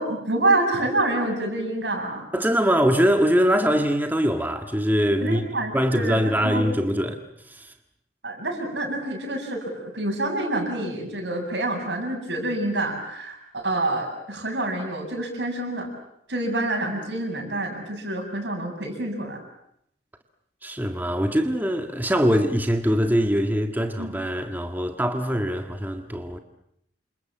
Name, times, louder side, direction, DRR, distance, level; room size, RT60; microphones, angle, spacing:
voice 1, 0.0-2.3 5.2-7.0 8.2-15.9 16.3-19.4 24.0-24.1, right 2 dB, 85° right, 7.7 m, -27 dB
voice 2, 2.3-7.2 7.5-7.7 20.6-26.4, equal, 10° right, 1.7 m, -23 dB
29.0 x 26.5 x 7.6 m
head